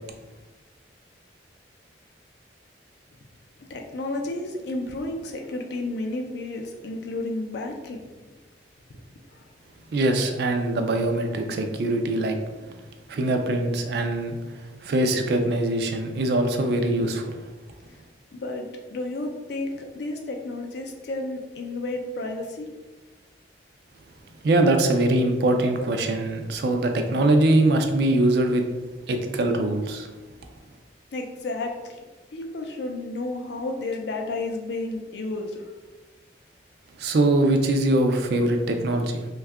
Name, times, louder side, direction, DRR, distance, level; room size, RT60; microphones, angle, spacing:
voice 1, 3.7-8.0 18.3-22.7 31.1-32.0 32.3-35.7, left 2 dB, 65° left, 3 dB, 0.4 m, -32 dB
voice 2, 9.9-12.4 13.1-14.4 14.8-17.4 24.4-28.6 29.1-30.1 37.0-39.3, right 2 dB, 60° right, 5 dB, 0.4 m, -22 dB
2.6 x 2.3 x 3.4 m, 1.2 s
head